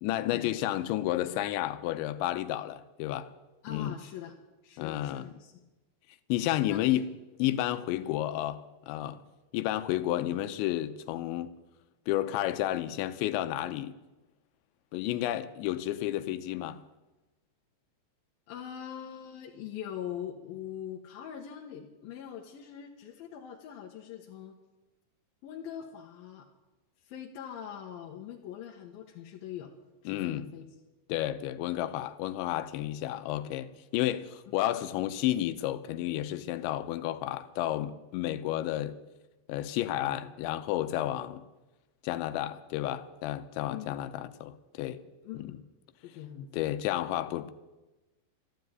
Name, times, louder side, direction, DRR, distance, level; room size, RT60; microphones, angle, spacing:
voice 1, 0.0-3.3 3.7-4.0 4.8-5.3 6.3-7.1 7.4-9.2 9.5-11.5 12.1-14.0 14.9-16.8 30.1-30.5 31.1-39.0 39.5-41.4 42.0-45.0 45.3-45.5 46.5-47.5, left 13 dB, 90° left, 3.1 m, -31 dB
voice 2, 3.6-4.3 4.6-5.6 6.6-7.0 7.9-8.1 18.5-24.6 25.4-26.5 27.0-29.7 30.0-30.7 43.7-44.0 45.2-45.6 46.0-46.7, left 9 dB, 70° left, 2.5 m, -42 dB
13.0 x 12.0 x 9.3 m
omnidirectional pair, 5.1 m